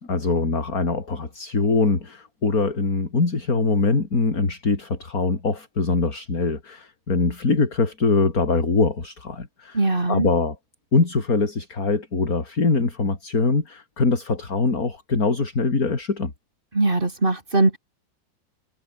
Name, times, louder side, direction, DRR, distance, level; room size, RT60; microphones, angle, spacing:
voice 1, 0.0-9.8 10.1-10.6 10.9-16.3, left 3 dB, 50° left, 3.9 m, -23 dB
voice 2, 9.7-10.3 16.7-17.8, right 2 dB, 30° right, 3.2 m, -21 dB
omnidirectional pair, 1.9 m